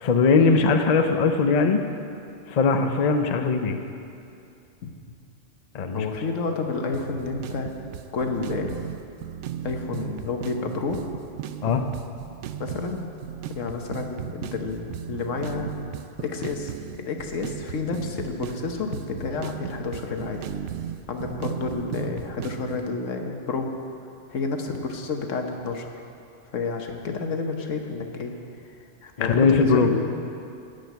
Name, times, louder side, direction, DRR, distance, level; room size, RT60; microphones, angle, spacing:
voice 1, 0.0-1.8 2.5-3.8 5.7-6.1 11.6-11.8 29.2-29.9, left 4 dB, 40° left, 6 dB, 0.7 m, -20 dB
voice 2, 5.9-7.7 8.1-8.8 9.6-11.0 12.6-13.1 13.5-15.7 16.2-20.4 21.1-23.7 24.3-25.9 26.5-28.3 29.0-30.1, left 4 dB, 85° left, 3 dB, 1.4 m, -30 dB
sound 1, 6.9-22.8, right 9 dB, 75° right, 0.9 m, -36 dB
14.5 x 5.2 x 9.1 m, 2.7 s
omnidirectional pair, 1.3 m